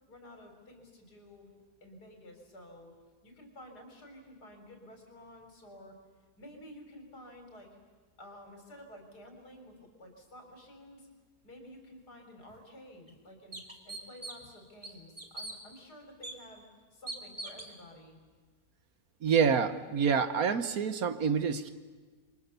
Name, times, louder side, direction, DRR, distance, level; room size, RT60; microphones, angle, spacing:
voice 1, 0.1-1.5 1.8-2.9 3.2-6.0 6.4-7.7 8.2-11.1 11.4-16.6 16.9-18.2, left 1 dB, 80° left, 4 dB, 4.5 m, -52 dB
sound 1, 12.5-12.6 13.1-13.2 13.5-14.5 14.8-15.6 16.2-16.3 17.1-17.7, right 2 dB, 20° right, 2.3 m, -41 dB
voice 2, 19.2-21.7, right 6 dB, 65° right, 11 dB, 1.6 m, -27 dB
28.0 x 24.0 x 7.0 m, 1.4 s
omnidirectional pair, 1.7 m